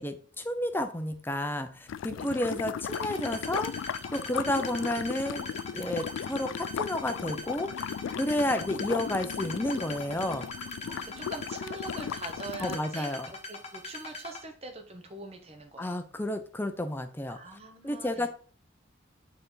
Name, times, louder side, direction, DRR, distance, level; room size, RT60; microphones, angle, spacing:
voice 1, 0.0-5.5 5.7-7.7 8.2-10.4 12.6-13.3 15.8-17.4 17.8-18.3, left 1 dB, 10° left, 7 dB, 0.5 m, -31 dB
sound 1, 1.9-12.8, left 8 dB, 75° left, 0.3 m, -36 dB
sound 2, 2.9-14.4, left 2 dB, 35° left, 1.0 m, -41 dB
voice 2, 10.8-13.2 13.5-16.0 17.3-18.3, right 2 dB, 30° right, 5 dB, 0.9 m, -43 dB
6.8 x 4.0 x 3.8 m, 0.42 s
head